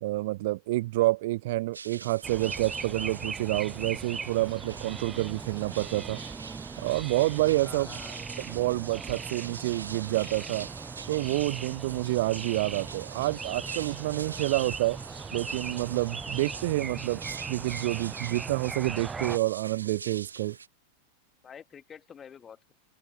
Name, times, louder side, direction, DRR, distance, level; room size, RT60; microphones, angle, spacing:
voice 1, 0.0-6.2 6.8-7.9 8.4-10.7 11.1-15.0 15.3-20.6, right 18 dB, 50° right, 0.9 m, -28 dB
sound 1, 1.7-20.7, right 5 dB, 75° right, 1.6 m, -44 dB
sound 2, 2.2-19.4, right 5 dB, 15° right, 1.6 m, -39 dB
voice 2, 7.6-8.2 21.4-22.7, left 7 dB, 20° left, 2.1 m, -47 dB
figure-of-eight pair, 90°, 0 cm